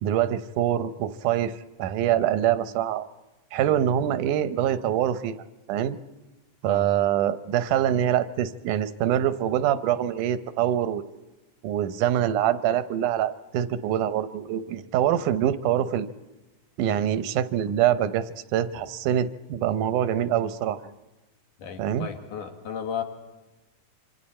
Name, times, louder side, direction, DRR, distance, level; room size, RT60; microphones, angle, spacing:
voice 1, 0.0-3.1 3.5-5.4 5.7-6.0 6.6-11.0 11.6-16.1 16.8-20.9 21.8-22.1, right 11 dB, 85° right, 12 dB, 2.3 m, -25 dB
voice 2, 21.6-23.0, left 8 dB, 85° left, 5 dB, 3.2 m, -34 dB
26.5 x 25.0 x 4.3 m, 1.1 s
omnidirectional pair, 3.5 m